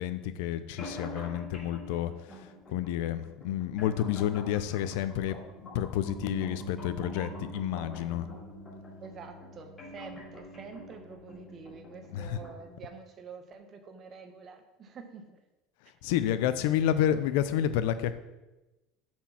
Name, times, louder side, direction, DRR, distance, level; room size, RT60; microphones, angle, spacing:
voice 1, 0.0-2.1 2.4-5.4 5.7-8.3 12.1-12.4 16.0-18.1, left 11 dB, 75° left, 12 dB, 0.6 m, -30 dB
sound 1, 0.8-12.8, left 1 dB, 15° left, 2.8 m, -47 dB
Bass guitar, 6.1-12.3, right 2 dB, 60° right, 1.8 m, -47 dB
voice 2, 9.0-15.4, right 5 dB, 30° right, 6 dB, 1.0 m, -47 dB
7.3 x 4.6 x 5.6 m, 1.0 s
cardioid pair, 150°, 0 cm